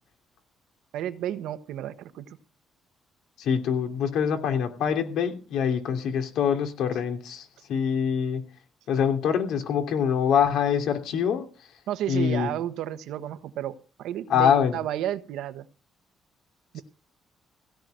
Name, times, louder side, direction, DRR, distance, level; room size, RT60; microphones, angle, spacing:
voice 1, 0.9-2.2 11.9-15.6 16.7-16.8, right 11 dB, 85° right, 11 dB, 1.3 m, -32 dB
voice 2, 3.4-8.4 8.9-11.5 12.1-12.5 14.3-14.8, left 7 dB, 80° left, 5 dB, 2.9 m, -24 dB
16.5 x 5.9 x 9.1 m, 0.35 s
cardioid pair, 90°, 0 cm